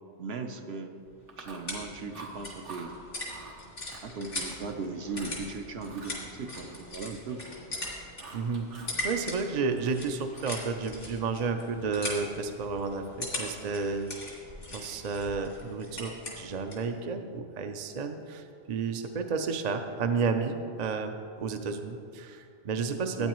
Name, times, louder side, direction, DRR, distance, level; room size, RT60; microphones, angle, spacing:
voice 1, 0.2-0.9 1.4-2.9 4.0-7.4 23.1-23.3, right 4 dB, 65° right, 5 dB, 0.9 m, -38 dB
sound 1, 1.1-16.9, left 1 dB, 90° left, 2.6 m, -40 dB
Chewing mastication, 1.3-1.8 2.1-2.9 3.3-3.6 3.9-4.7 5.1-5.4 5.8-7.4 7.7-9.0 9.3-10.6, right 3 dB, 80° right, 1.6 m, -48 dB
voice 2, 8.3-8.7 9.0-14.1 14.7-23.3, right 4 dB, 50° right, 6 dB, 0.5 m, -32 dB
13.5 x 9.2 x 3.0 m, 2.3 s
omnidirectional pair, 1.2 m